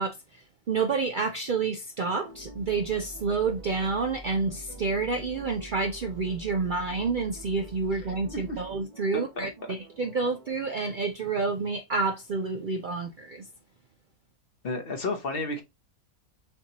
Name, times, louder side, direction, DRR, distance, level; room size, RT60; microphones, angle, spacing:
voice 1, 0.0-13.5, right 4 dB, 90° right, 0.4 m, -29 dB
sound 1, 2.2-10.5, right 2 dB, 30° right, 1.0 m, -50 dB
sound 2, 2.3-8.9, right 1 dB, 65° right, 1.5 m, -46 dB
voice 2, 9.1-9.5 14.6-15.6, left 2 dB, 45° left, 0.9 m, -32 dB
6.5 x 2.9 x 2.8 m
omnidirectional pair, 1.5 m